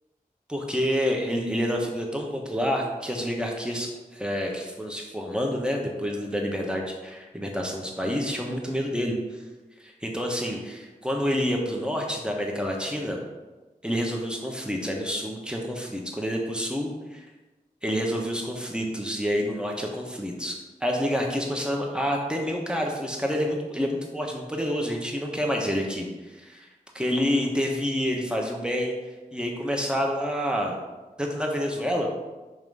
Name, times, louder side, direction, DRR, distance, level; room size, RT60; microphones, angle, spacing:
voice 1, 0.5-9.4 9.8-13.2 13.8-17.2 17.8-26.7 26.9-28.9 29.3-30.8 31.2-32.1, equal, 5° right, 0 dB, 1.2 m, -28 dB
5.7 x 3.0 x 5.5 m, 1.2 s
cardioid pair, 45°, 15 cm